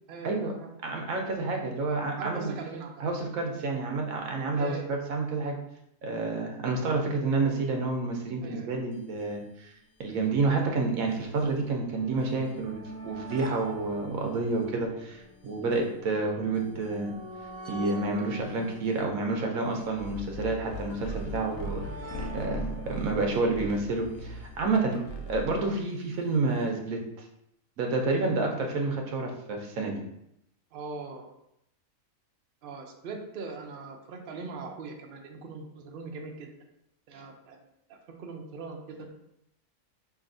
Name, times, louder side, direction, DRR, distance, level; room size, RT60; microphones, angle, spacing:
voice 1, 0.1-0.7 2.2-3.0 4.5-4.9 8.4-8.7 30.7-31.3 32.6-36.5 37.1-37.6 37.9-39.1, right 4 dB, 55° right, 1 dB, 0.7 m, -40 dB
voice 2, 0.8-2.6 3.0-5.6 6.0-9.7 10.0-17.1 17.7-21.8 22.3-25.0 25.3-27.0 27.8-30.0, right 3 dB, 85° right, 2 dB, 1.2 m, -29 dB
sound 1, 8.9-9.0 9.2-9.3 10.1-25.4 26.4-26.5 26.6-26.7, right 1 dB, 15° left, 0.8 m, -45 dB
sound 2, 19.9-25.7, right 1 dB, 90° left, 1.1 m, -39 dB
5.0 x 2.7 x 2.6 m, 0.79 s
omnidirectional pair, 1.4 m